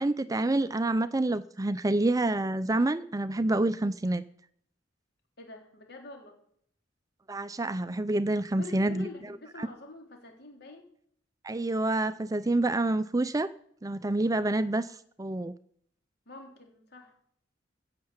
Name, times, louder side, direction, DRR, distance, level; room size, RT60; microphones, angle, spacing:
voice 1, 0.0-4.2 7.3-9.7 11.4-13.5 13.8-15.5, right 2 dB, 20° right, 14 dB, 0.5 m, -28 dB
voice 2, 5.4-6.4 8.6-10.9 16.3-17.1, left 2 dB, 60° left, 2 dB, 3.7 m, -46 dB
16.5 x 6.7 x 7.3 m, 0.65 s
head